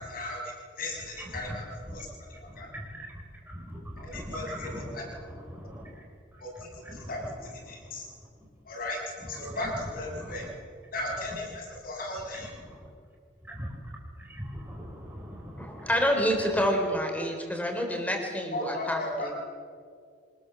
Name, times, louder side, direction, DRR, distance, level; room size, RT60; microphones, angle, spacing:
voice 1, 0.1-1.6 1.9-2.1 2.4-2.7 4.0-5.0 6.4-8.1 8.6-9.0 9.3-10.5 10.9-12.5 18.5-19.3, left 2 dB, 50° left, -1 dB, 6.6 m, -36 dB
voice 2, 2.5-2.9 3.5-4.8 5.5-5.9 6.8-7.1 9.4-9.6 10.2-10.4 13.5-13.7 14.2-15.9, equal, 10° right, -2 dB, 4.3 m, -40 dB
voice 3, 15.6-19.3, equal, 10° left, 3 dB, 4.0 m, -28 dB
25.0 x 20.0 x 7.2 m, 2.2 s
head